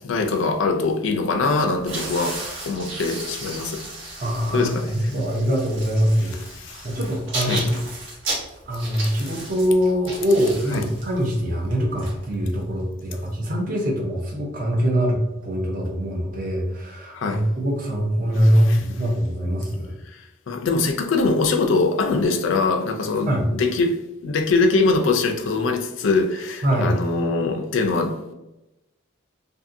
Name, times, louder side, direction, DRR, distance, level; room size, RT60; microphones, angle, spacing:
voice 1, 0.0-3.8 4.5-5.1 6.6-6.9 7.4-7.6 10.7-10.8 17.1-17.4 18.4-18.8 20.1-23.3 23.6-23.9 24.2-28.3, left 3 dB, 75° left, 0.4 m, -23 dB
sound 1, 1.8-12.8, right 2 dB, 70° right, 0.9 m, -34 dB
voice 2, 4.2-6.4 6.8-7.8 8.7-19.9 23.3-23.4 26.6-26.9, equal, 45° right, 0.6 m, -23 dB
2.6 x 2.5 x 2.5 m
head